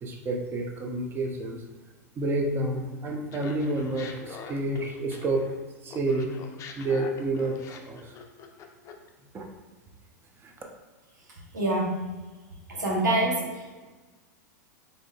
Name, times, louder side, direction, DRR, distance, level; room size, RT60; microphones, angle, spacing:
voice 1, 0.0-1.6 2.2-5.4 5.8-8.1 9.3-9.4 10.4-10.5, right 2 dB, 25° right, 2 dB, 0.6 m, -29 dB
Laughter, 3.3-5.6 5.9-9.1, left 6 dB, 30° left, 0.4 m, -44 dB
voice 2, 11.5-12.0 12.7-13.8, right 1 dB, 85° right, -3 dB, 1.3 m, -26 dB
3.9 x 3.7 x 2.3 m, 1.2 s
hypercardioid pair, 100°, 10 cm